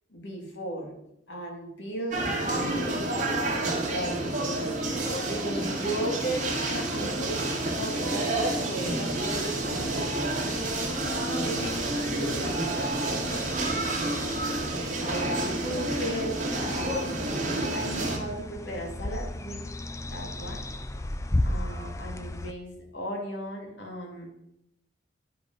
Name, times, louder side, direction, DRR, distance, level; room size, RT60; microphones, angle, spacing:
voice 1, 0.1-0.9 1.3-4.8 5.3-7.4 7.8-10.5 11.1-14.5 15.0-17.3 17.7-19.6 20.1-20.6 21.4-24.3, right 1 dB, 75° left, 1 dB, 2.2 m, -36 dB
sound 1, 2.1-18.2, right 2 dB, 40° right, 1.7 m, -29 dB
sound 2, 9.1-22.5, left 1 dB, 15° left, 0.4 m, -36 dB
9.9 x 5.1 x 5.3 m, 0.83 s
head